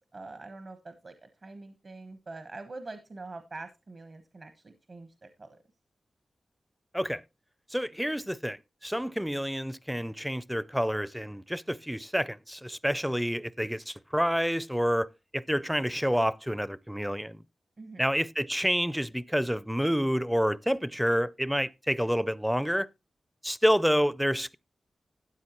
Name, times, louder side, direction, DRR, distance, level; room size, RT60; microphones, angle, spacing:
voice 1, 0.1-5.6 17.8-18.0, right 3 dB, 50° right, 1.1 m, -44 dB
voice 2, 7.7-17.4 18.0-22.9 23.4-24.5, equal, 5° right, 0.4 m, -28 dB
13.0 x 9.3 x 3.0 m
wide cardioid pair, 75°, 0 cm